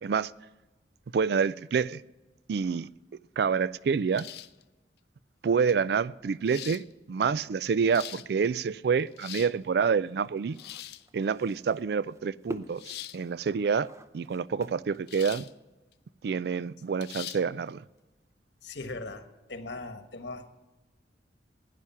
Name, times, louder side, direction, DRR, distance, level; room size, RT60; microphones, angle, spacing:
voice 1, 1.1-2.0 2.5-2.9 3.4-4.3 5.4-10.6 11.1-12.8 13.1-13.9 14.1-15.4 16.2-17.8, right 6 dB, 65° right, 0.3 m, -27 dB
sound 1, 4.1-4.6 5.7-5.8 6.5-6.8 7.7-8.3 9.0-9.6 10.5-11.1 12.8-13.2 15.1-15.5 15.9-16.0 17.0-17.4, left 13 dB, 65° left, 0.5 m, -42 dB
sound 2, 9.5-15.7, right 1 dB, 15° right, 0.6 m, -46 dB
voice 2, 18.6-20.5, left 2 dB, 80° left, 1.3 m, -39 dB
16.0 x 9.8 x 5.7 m
head